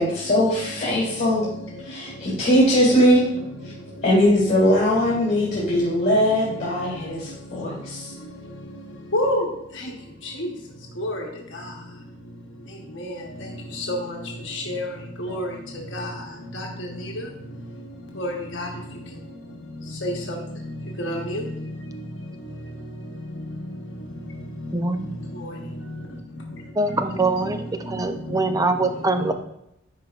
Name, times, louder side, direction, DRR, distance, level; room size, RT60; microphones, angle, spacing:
voice 1, 0.0-1.5 1.9-3.3 4.0-8.1, equal, 40° left, -6 dB, 2.0 m, -20 dB
voice 2, 9.1-9.4 11.0-11.2 13.0-13.1 13.8-14.0 14.5-14.9 15.2-15.5 15.9-16.1 16.5-16.7 18.2-18.7 20.0-20.4 21.0-21.4 26.9-27.1, left 1 dB, 70° left, 0 dB, 1.0 m, -26 dB
voice 3, 24.7-25.2 26.8-27.6 27.9-29.3, right 2 dB, 20° right, 7 dB, 0.4 m, -23 dB
10.5 x 4.8 x 2.4 m, 0.81 s
head